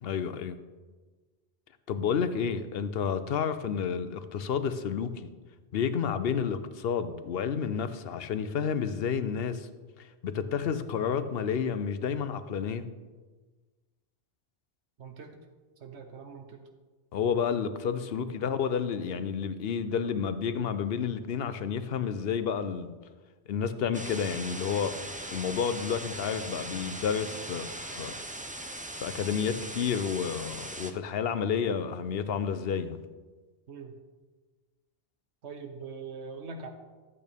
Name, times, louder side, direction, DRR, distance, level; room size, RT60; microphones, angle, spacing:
voice 1, 0.0-0.6 1.9-5.3 5.7-9.7 10.0-12.8 17.1-22.9 23.5-25.0 25.3-28.2 29.0-33.0, left 7 dB, 65° left, 11 dB, 0.8 m, -30 dB
voice 2, 15.0-15.4 15.8-16.6 18.1-18.3 33.7-33.9 35.4-36.7, right 5 dB, 80° right, 4 dB, 1.2 m, -42 dB
sound 1, 23.9-30.9, right 1 dB, 15° right, 0.3 m, -40 dB
12.5 x 8.7 x 3.5 m, 1.3 s
omnidirectional pair, 1.1 m